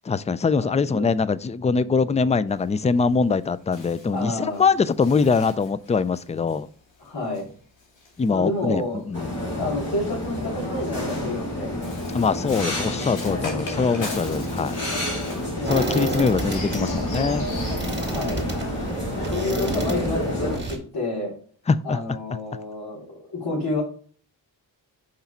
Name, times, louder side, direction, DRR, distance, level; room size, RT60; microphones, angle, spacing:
voice 1, 0.1-6.7 8.2-9.3 12.1-14.8 15.7-17.5 21.7-22.0, left 5 dB, 15° left, 0.3 m, -23 dB
voice 2, 0.6-1.1 4.1-4.6 7.0-7.5 8.3-9.3 9.6-11.7 14.9-15.0 15.6-16.3 17.7-18.4 19.3-21.3 21.8-23.8, left 2 dB, 60° left, 3.3 m, -29 dB
Bird, 2.5-9.0 9.9-18.7, left 3 dB, 80° left, 2.3 m, -42 dB
sound 1, 9.1-20.6, left 1 dB, 35° left, 3.4 m, -29 dB
sound 2, 15.7-20.8, right 2 dB, 25° right, 2.2 m, -31 dB
5.7 x 5.2 x 4.2 m
wide cardioid pair, 85°, 44 cm